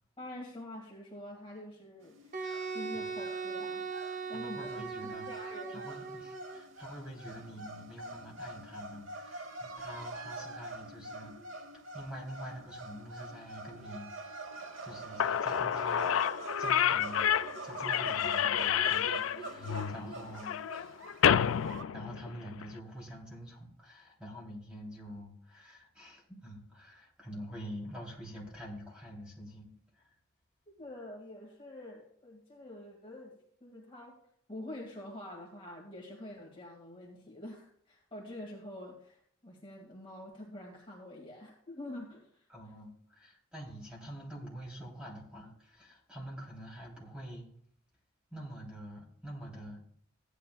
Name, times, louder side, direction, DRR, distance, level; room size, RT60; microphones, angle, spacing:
voice 1, 0.2-3.8 4.3-5.8 30.7-34.1 34.5-42.5, left 1 dB, 25° left, -2 dB, 2.0 m, -46 dB
sound 1, 2.0-21.8, right 3 dB, 70° right, 1.0 m, -45 dB
Wind instrument woodwind instrument, 2.3-6.6, right 4 dB, 35° right, 0.8 m, -39 dB
voice 2, 4.1-16.1 16.6-17.3 17.6-20.6 20.9-21.0 21.9-29.7 30.0-30.1 42.5-47.5 48.3-49.8, equal, 5° right, -3 dB, 3.2 m, -46 dB
Slam / Squeak, 14.9-15.0 15.2-22.7, left 9 dB, 80° left, 0.4 m, -29 dB
15.5 x 10.0 x 2.3 m, 0.63 s
head